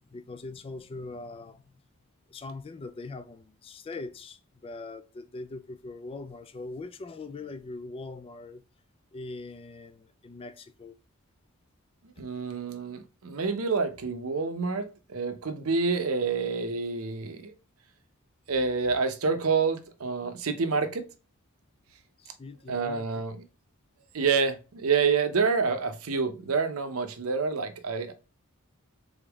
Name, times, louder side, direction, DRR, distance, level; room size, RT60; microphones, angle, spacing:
voice 1, 0.1-1.8 2.3-8.6 9.1-10.9 22.2-23.2, left 3 dB, 25° left, 0.3 m, -41 dB
voice 2, 12.2-17.5 18.5-21.1 22.7-23.4 24.1-28.1, right 5 dB, 75° right, 0.7 m, -28 dB
3.8 x 3.5 x 3.4 m
head